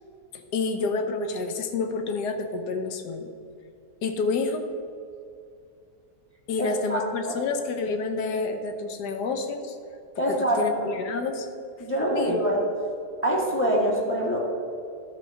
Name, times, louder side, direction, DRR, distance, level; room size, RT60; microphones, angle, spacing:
voice 1, 0.3-3.3 4.0-4.7 6.5-9.8 10.3-11.5 12.1-12.4, left 4 dB, 75° left, 7 dB, 1.4 m, -29 dB
voice 2, 6.6-7.3 10.2-10.9 11.8-12.6 13.2-14.4, equal, 10° left, -2 dB, 1.4 m, -25 dB
11.0 x 4.3 x 6.8 m, 2.4 s
omnidirectional pair, 1.8 m